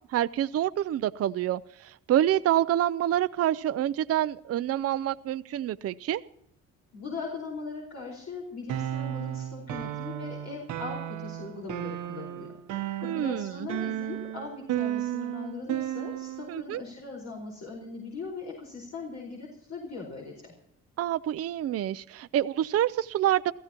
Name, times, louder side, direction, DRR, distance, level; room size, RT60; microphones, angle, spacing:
voice 1, 0.1-6.2 13.0-13.7 16.5-16.8 21.0-23.5, right 12 dB, 50° right, 13 dB, 0.5 m, -27 dB
voice 2, 6.9-12.5 13.0-20.5, left 4 dB, 60° left, -1 dB, 4.7 m, -40 dB
sound 1, 8.7-16.6, right 12 dB, 90° right, 1.1 m, -34 dB
28.0 x 15.0 x 2.9 m, 0.74 s
cardioid pair, 90°, 30 cm